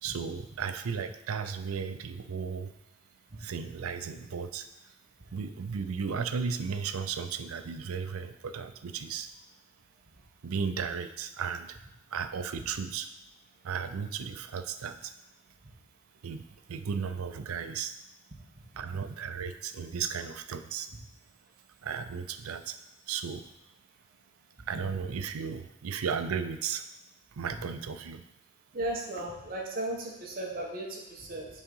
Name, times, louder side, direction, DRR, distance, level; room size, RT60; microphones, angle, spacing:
voice 1, 0.0-2.7 3.4-4.7 5.3-9.3 10.4-11.8 12.1-13.1 13.6-15.1 16.2-16.4 16.7-17.9 18.8-20.9 21.8-22.8 23.1-23.4 24.7-26.9 27.3-28.2, right 6 dB, 75° right, 10 dB, 0.5 m, -35 dB
voice 2, 28.7-31.5, right 1 dB, 45° right, -1 dB, 1.3 m, -35 dB
7.3 x 3.8 x 5.4 m, 0.89 s
head